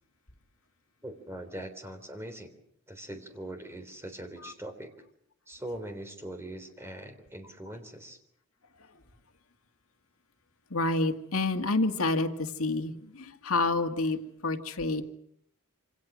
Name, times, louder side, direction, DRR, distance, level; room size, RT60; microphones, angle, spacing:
voice 1, 1.0-2.5 2.9-4.9 5.5-8.2, right 1 dB, 10° right, 6 dB, 3.5 m, -41 dB
voice 2, 10.7-15.0, left 2 dB, 80° left, 7 dB, 2.0 m, -28 dB
27.5 x 26.5 x 6.2 m, 0.69 s
head